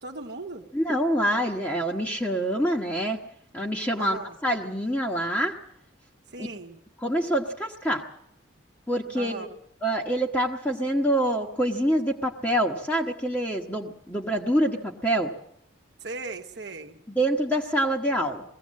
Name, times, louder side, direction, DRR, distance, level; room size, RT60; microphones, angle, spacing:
voice 1, 0.0-0.7 4.0-4.4 6.3-6.8 9.1-9.5 16.0-17.0, right 3 dB, 55° right, 3 dB, 1.1 m, -37 dB
voice 2, 0.7-3.2 3.5-4.2 4.4-5.5 6.4-6.5 7.0-8.0 8.9-9.5 9.8-15.3 17.1-18.4, right 1 dB, 10° left, -1 dB, 1.1 m, -26 dB
21.0 x 16.5 x 7.5 m, 0.74 s
head